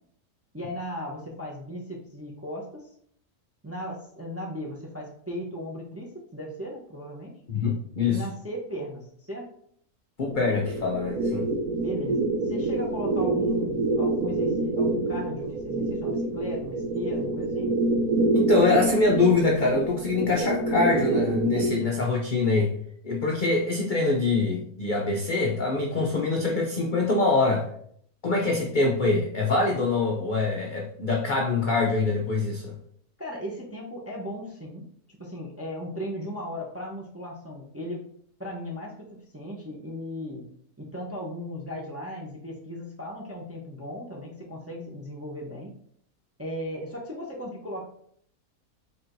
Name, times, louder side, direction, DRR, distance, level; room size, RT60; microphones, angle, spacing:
voice 1, 0.5-2.9 3.6-7.3 8.1-9.5 11.8-17.7 33.2-34.9 35.2-38.1 38.4-40.4 40.8-45.7 46.4-47.9, equal, 15° right, -3 dB, 0.4 m, -36 dB
voice 2, 7.5-8.2 10.2-11.5 18.3-22.7 23.0-27.7 28.2-32.7, left 3 dB, 65° left, -1 dB, 0.4 m, -24 dB
sound 1, 10.3-21.8, right 2 dB, 75° right, 1.1 m, -26 dB
4.4 x 4.2 x 2.6 m, 0.65 s
omnidirectional pair, 1.6 m